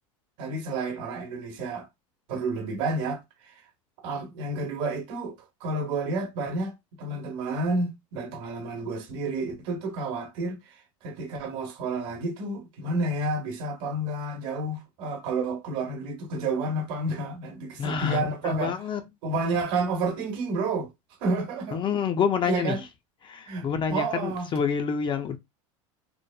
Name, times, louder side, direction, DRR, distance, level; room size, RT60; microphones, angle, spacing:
voice 1, 0.4-1.9 2.3-3.5 4.0-18.8 19.2-20.9 21.2-21.8 22.4-22.8 23.5-24.5, right 2 dB, 65° right, 1.0 m, -30 dB
voice 2, 17.8-18.2 18.6-19.0 21.7-22.8 23.2-25.4, left 7 dB, 30° left, 0.4 m, -27 dB
2.9 x 2.0 x 2.2 m
hypercardioid pair, 100°, 17 cm